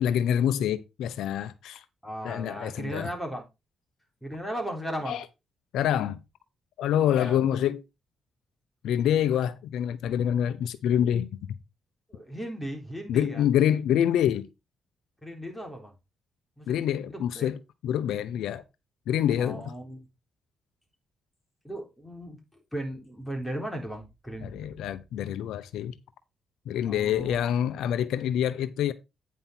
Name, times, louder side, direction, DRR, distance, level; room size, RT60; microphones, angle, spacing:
voice 1, 0.0-1.8 2.2-3.1 5.1-5.2 5.7-6.2 6.8-7.8 8.8-11.3 13.1-14.5 16.7-18.6 19.1-19.7 24.4-25.9 26.7-28.9, left 10 dB, 90° left, 0.7 m, -26 dB
voice 2, 2.0-3.4 4.2-5.2 7.1-7.4 12.1-13.4 15.2-15.9 16.6-16.7 17.1-17.5 19.4-20.0 21.6-22.4 22.7-24.5 26.9-27.5, equal, 5° left, 3.7 m, -36 dB
9.3 x 5.6 x 4.3 m
cardioid pair, 80°, 0 cm